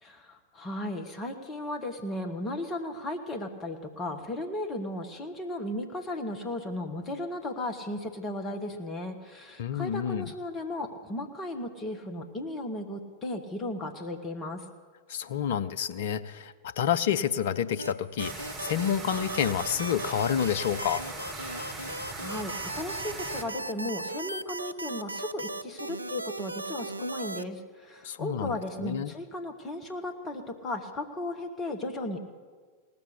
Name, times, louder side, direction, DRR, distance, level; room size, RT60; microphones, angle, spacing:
voice 1, 0.0-14.6 21.7-32.2, left 1 dB, 20° left, 4 dB, 1.5 m, -35 dB
voice 2, 9.6-10.3 15.1-21.0 28.0-28.5 28.8-29.1, left 9 dB, 55° left, 11 dB, 0.5 m, -29 dB
sound 1, 17.8-27.4, right 2 dB, 85° right, 0.3 m, -37 dB
sound 2, 18.2-23.4, right 2 dB, 15° right, 2.8 m, -40 dB
18.0 x 6.8 x 8.3 m, 1.5 s
figure-of-eight pair, 90°, 0 cm